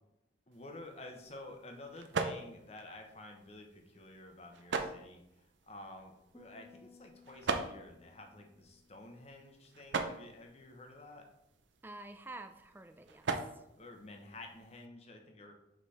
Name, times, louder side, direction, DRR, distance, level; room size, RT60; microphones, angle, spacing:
voice 1, 0.5-11.2 13.8-15.5, left 2 dB, 35° left, 3 dB, 1.0 m, -51 dB
sound 1, 0.5-14.9, right 4 dB, 80° right, 0.6 m, -42 dB
sound 2, 6.3-9.8, left 4 dB, 10° left, 1.3 m, -62 dB
voice 2, 11.8-13.6, right 2 dB, 10° right, 8 dB, 0.4 m, -49 dB
5.3 x 5.3 x 4.2 m, 0.86 s
head